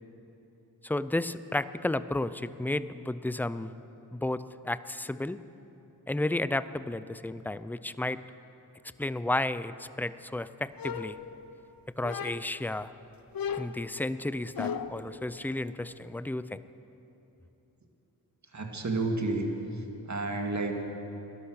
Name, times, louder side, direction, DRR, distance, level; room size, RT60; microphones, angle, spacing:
voice 1, 0.8-3.7 4.1-5.4 6.1-8.2 9.0-11.2 12.0-12.9 13.5-16.6, left 2 dB, 5° left, 14 dB, 0.5 m, -32 dB
sound 1, 10.8-11.6 12.0-12.7 13.3-15.1, left 7 dB, 55° left, 0.8 m, -36 dB
voice 2, 18.4-20.8, right 2 dB, 40° right, 3 dB, 2.3 m, -31 dB
17.5 x 11.5 x 6.5 m, 3.0 s
supercardioid pair, 40°, 42 cm